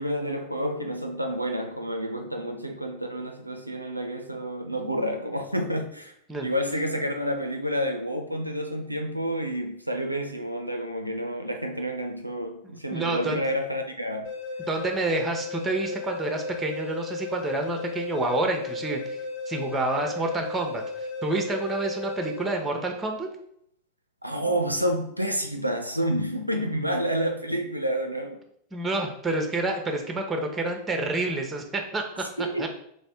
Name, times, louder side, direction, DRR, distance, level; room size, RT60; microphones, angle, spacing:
voice 1, 0.0-6.1 6.4-14.3 24.2-28.4 32.4-32.7, equal, 90° right, 0.4 m, -29 dB
voice 2, 12.6-13.4 14.6-19.2 19.5-23.3 28.7-32.3 32.6-32.7, right 2 dB, 15° right, 0.7 m, -28 dB
sound 1, 14.2-23.2, left 3 dB, 70° left, 0.9 m, -35 dB
3.2 x 3.1 x 4.4 m
figure-of-eight pair, 90°, 0 cm